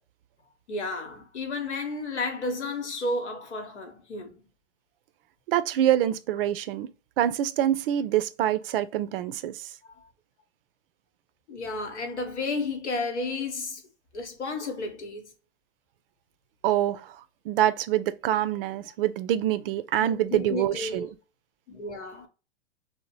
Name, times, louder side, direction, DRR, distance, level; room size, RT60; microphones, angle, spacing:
voice 1, 0.7-4.4 9.8-10.1 11.5-13.8 14.1-15.3 20.0-21.1 21.7-22.3, left 2 dB, 90° left, 1.0 m, -32 dB
voice 2, 5.5-6.9 7.2-9.6 16.6-17.1 17.5-21.1, right 11 dB, 55° right, 0.4 m, -25 dB
2.8 x 2.0 x 3.0 m
hypercardioid pair, 110°, 34 cm